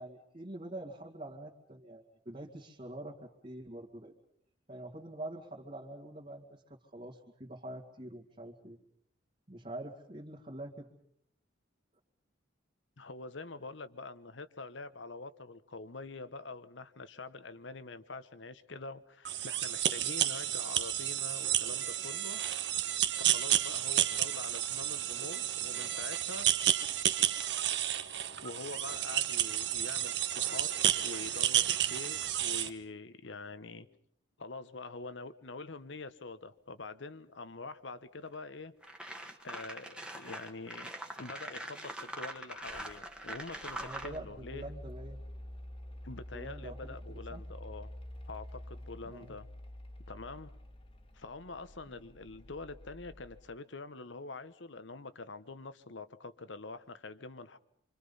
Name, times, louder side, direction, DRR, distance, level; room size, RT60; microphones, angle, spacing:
voice 1, 0.0-3.2 3.4-4.1 4.7-8.8 9.5-10.9 43.8-45.3 46.3-46.9 47.3-47.4 49.0-49.3 51.9-52.0, right 1 dB, 35° right, 2.4 m, -45 dB
voice 2, 13.0-22.4 22.8-22.9 23.2-26.5 28.4-33.9 34.4-38.8 39.4-40.9 41.2-44.7 46.0-47.9 48.3-49.5 50.1-50.5 51.1-57.6, left 3 dB, 70° left, 1.1 m, -45 dB
sound 1, 19.2-32.7, right 11 dB, 60° right, 1.2 m, -31 dB
sound 2, 38.3-38.4 38.8-44.2, right 1 dB, 5° right, 1.5 m, -43 dB
Mechanical fan, 42.6-53.5, left 1 dB, 30° left, 1.7 m, -48 dB
27.0 x 25.5 x 5.6 m
head